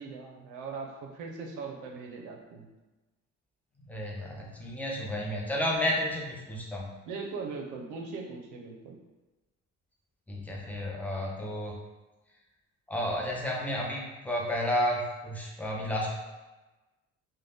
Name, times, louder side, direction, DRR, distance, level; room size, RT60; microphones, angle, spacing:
voice 1, 0.0-2.7 7.1-9.0, right 4 dB, 85° right, 1 dB, 0.5 m, -40 dB
voice 2, 3.9-6.9 10.3-11.7 12.9-16.1, equal, 5° left, -3 dB, 0.5 m, -31 dB
2.6 x 2.1 x 3.3 m, 1.1 s
cardioid pair, 100°, 30 cm